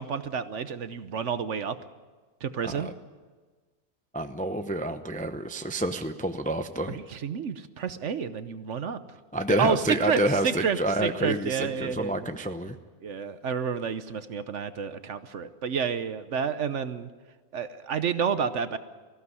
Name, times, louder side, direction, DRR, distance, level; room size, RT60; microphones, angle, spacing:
voice 1, 0.0-1.8 2.4-2.9 6.9-9.0 9.5-12.4 13.0-17.1 17.5-18.8, right 6 dB, 60° right, 12 dB, 1.1 m, -30 dB
voice 2, 4.1-7.0 9.3-12.8, right 1 dB, 10° left, 8 dB, 0.5 m, -28 dB
19.0 x 15.5 x 9.7 m, 1.4 s
omnidirectional pair, 1.5 m